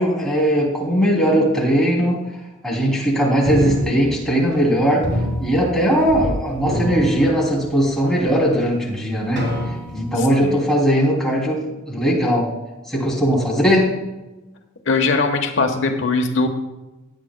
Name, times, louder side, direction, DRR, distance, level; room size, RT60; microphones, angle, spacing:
voice 1, 0.0-2.2 2.6-5.1 5.4-9.5 9.9-12.5 12.9-13.9, equal, 5° left, -3 dB, 2.8 m, -19 dB
sound 1, 3.5-4.7 5.0-6.3 6.6-7.9 8.5-8.6 9.4-10.2, left 1 dB, 65° right, 3.0 m, -26 dB
voice 2, 10.2-10.6 14.9-16.5, left 3 dB, 65° left, 4 dB, 1.1 m, -20 dB
16.5 x 10.0 x 2.2 m, 1.0 s
head